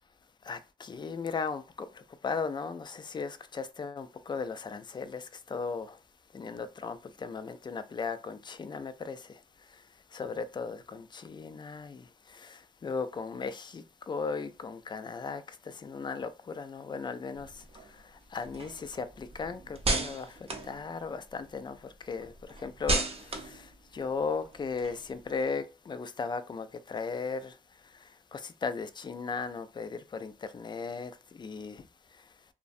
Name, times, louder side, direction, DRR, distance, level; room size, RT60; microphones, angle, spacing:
voice 1, 0.4-6.0 6.3-32.3, left 5 dB, 30° left, 0.3 m, -37 dB
sound 1, 17.3-21.5 21.9-25.4, right 2 dB, 40° right, 0.6 m, -35 dB
2.5 x 2.0 x 2.5 m
cardioid pair, 70°, 15 cm